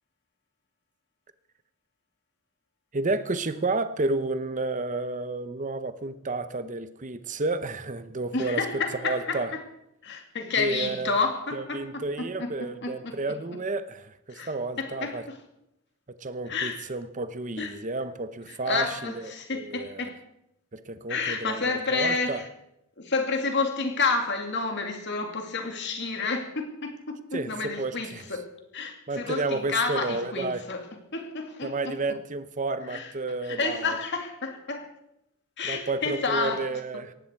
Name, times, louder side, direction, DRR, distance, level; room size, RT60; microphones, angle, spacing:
voice 1, 2.9-9.5 10.6-11.1 11.5-15.3 16.1-20.1 20.7-22.4 27.3-28.3 29.1-30.6 31.6-34.0 35.6-37.1, right 3 dB, 35° right, 0.8 m, -31 dB
voice 2, 8.3-9.6 10.0-13.2 14.3-14.5 14.8-15.4 16.5-16.8 17.6-17.7 18.6-20.2 21.1-22.5 23.0-30.9 31.1-32.0 32.9-33.1 33.4-34.9 35.6-36.7 36.9-37.0, left 4 dB, 55° left, 2.6 m, -30 dB
18.5 x 15.0 x 4.6 m
head